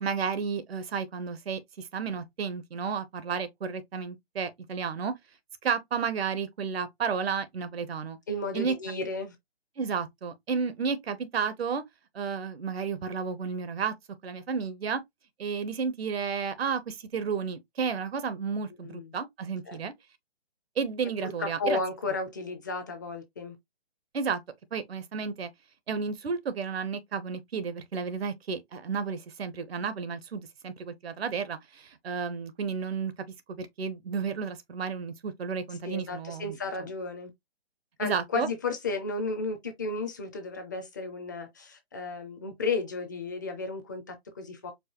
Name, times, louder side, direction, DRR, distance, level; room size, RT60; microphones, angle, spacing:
voice 1, 0.0-5.1 5.6-8.2 8.5-8.7 9.8-11.8 12.1-13.9 14.2-15.0 15.4-19.9 20.8-21.8 24.1-24.4 24.7-25.5 25.9-33.1 33.5-36.6 38.0-38.5, right 6 dB, 75° right, 0.9 m, -32 dB
voice 2, 8.3-9.4 18.8-19.1 19.7-19.8 21.2-23.6 35.8-37.3 38.0-44.7, left 3 dB, 20° left, 0.4 m, -33 dB
4.6 x 2.3 x 2.9 m
hypercardioid pair, 155°, 31 cm